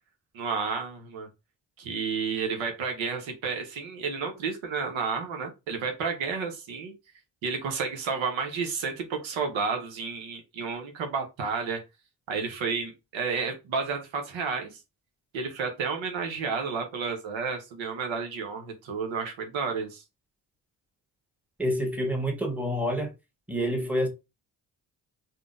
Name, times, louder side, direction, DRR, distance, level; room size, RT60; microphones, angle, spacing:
voice 1, 0.3-1.3 1.8-6.9 7.4-11.8 12.3-14.8 15.3-20.0, right 5 dB, 75° right, 0.8 m, -31 dB
voice 2, 21.6-23.1 23.5-24.1, equal, 5° right, 1.1 m, -27 dB
3.6 x 2.1 x 2.4 m
hypercardioid pair, 40°, 47 cm